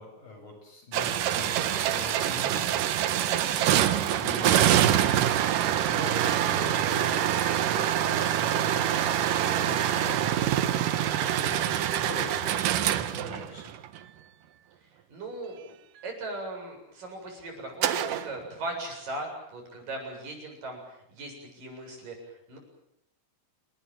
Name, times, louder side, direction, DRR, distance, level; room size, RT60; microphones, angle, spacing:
voice 1, 0.0-2.8 3.1-7.3 7.6-13.6, left 2 dB, 45° left, 2 dB, 9.6 m, -42 dB
sound 1, 0.9-14.0 17.8-18.3, right 11 dB, 70° right, 2.1 m, -25 dB
voice 2, 15.1-15.8 16.0-22.6, right 2 dB, 45° right, 3 dB, 9.0 m, -38 dB
29.5 x 20.0 x 9.2 m, 0.75 s
omnidirectional pair, 5.5 m